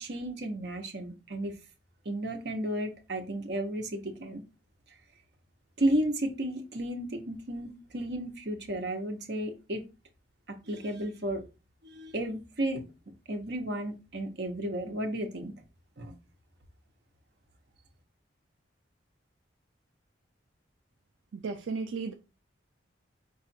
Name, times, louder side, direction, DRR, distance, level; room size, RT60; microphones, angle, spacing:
voice 1, 0.0-1.5 2.0-4.4 5.8-9.8 10.7-11.4 11.8-12.8 13.3-15.5 16.0-16.1, right 1 dB, 60° right, 0.9 m, -33 dB
voice 2, 21.3-22.1, right 4 dB, 85° right, 0.5 m, -34 dB
4.8 x 2.5 x 4.2 m
head